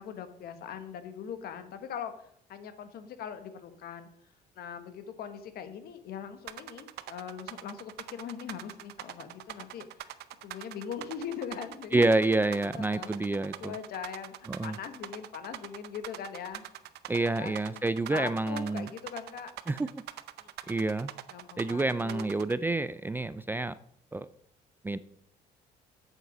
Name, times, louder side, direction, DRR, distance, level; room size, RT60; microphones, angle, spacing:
voice 1, 0.0-4.1 4.6-16.7 17.2-17.8 18.1-19.5 20.4-20.8 21.3-22.2, left 8 dB, 65° left, 9 dB, 1.3 m, -41 dB
sound 1, 6.5-22.5, right 14 dB, 75° right, 0.6 m, -43 dB
voice 2, 11.9-13.7 14.5-14.8 17.1-18.9 19.7-19.9 20.7-21.1 21.6-23.7 24.1-24.3 24.8-25.0, right 2 dB, 10° right, 15 dB, 0.3 m, -28 dB
8.0 x 7.7 x 5.3 m, 0.67 s
cardioid pair, 110°, 17 cm